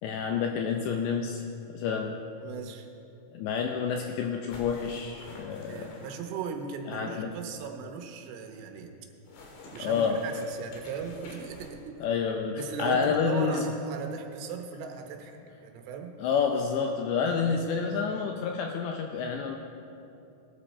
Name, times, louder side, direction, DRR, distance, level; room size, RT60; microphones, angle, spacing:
voice 1, 0.0-2.2 3.3-5.9 6.9-7.3 9.8-10.2 12.0-13.7 16.2-19.6, left 6 dB, 80° left, 3 dB, 2.6 m, -29 dB
voice 2, 2.4-2.9 5.7-8.9 9.7-12.0 12.6-16.1 17.3-17.6, right 6 dB, 80° right, 4 dB, 3.6 m, -38 dB
sound 1, 4.5-6.4 9.3-11.8, left 2 dB, 65° left, 4.0 m, -48 dB
20.0 x 12.5 x 4.3 m, 2.7 s
omnidirectional pair, 5.8 m